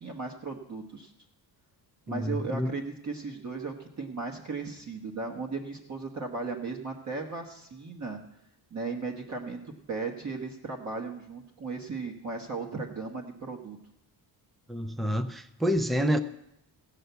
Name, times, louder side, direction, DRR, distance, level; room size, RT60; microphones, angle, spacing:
voice 1, 0.0-1.1 2.1-8.2 8.7-13.8, right 4 dB, 40° right, 1.3 m, -36 dB
voice 2, 2.1-2.7 14.7-16.2, equal, ahead, 0.4 m, -28 dB
16.5 x 5.7 x 8.0 m
wide cardioid pair, 170°, 44 cm